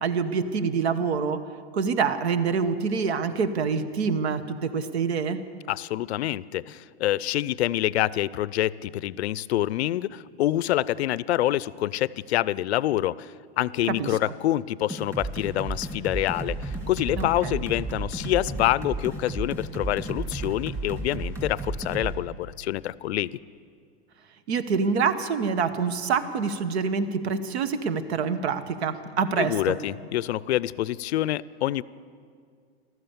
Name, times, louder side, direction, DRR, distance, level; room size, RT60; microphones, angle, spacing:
voice 1, 0.0-1.4 1.7-5.4 13.9-14.1 17.2-17.6 24.5-29.8, right 5 dB, 75° right, 12 dB, 1.1 m, -26 dB
voice 2, 5.7-23.4 29.4-31.8, left 14 dB, 75° left, 20 dB, 0.5 m, -26 dB
sound 1, 14.9-22.2, right 2 dB, 10° right, 2.2 m, -33 dB
14.5 x 13.0 x 7.1 m, 2.2 s
hypercardioid pair, 135°, 32 cm